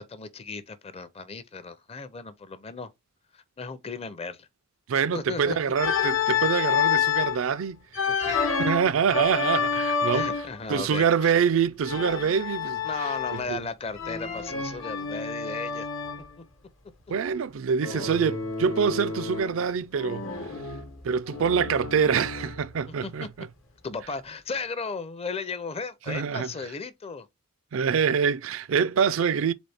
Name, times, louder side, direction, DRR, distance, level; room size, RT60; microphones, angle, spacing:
voice 1, 0.0-2.9 3.3-4.5 5.1-5.6 8.1-8.4 10.1-11.4 12.8-15.9 16.4-16.5 22.9-23.3 23.8-27.3, left 4 dB, 30° left, 0.5 m, -36 dB
voice 2, 4.9-10.3 10.7-13.6 17.1-20.3 21.0-23.5 26.1-26.5 27.7-29.5, right 6 dB, 75° right, 0.4 m, -25 dB
Organ, 5.8-7.4 7.9-10.6 11.8-13.6 14.0-16.3 17.8-19.6 19.9-22.7, left 6 dB, 70° left, 1.0 m, -29 dB
4.1 x 3.8 x 3.4 m
head